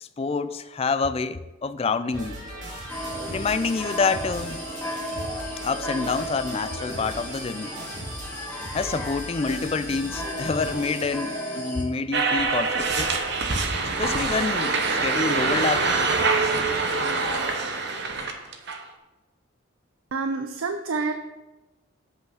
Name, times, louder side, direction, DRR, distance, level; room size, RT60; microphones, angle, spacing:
voice 1, 0.0-2.4 3.3-4.6 5.6-7.7 8.7-13.2 14.0-15.9, left 4 dB, 30° left, 12 dB, 0.3 m, -27 dB
sound 1, 2.1-11.6, equal, 35° right, 2.5 m, -38 dB
sound 2, 2.9-11.8, equal, 10° left, 1.8 m, -35 dB
sound 3, 12.1-18.8, right 4 dB, 55° right, 0.9 m, -24 dB
voice 2, 20.1-21.1, right 4 dB, 80° right, 7 dB, 0.5 m, -27 dB
7.8 x 5.6 x 5.6 m, 1.1 s
head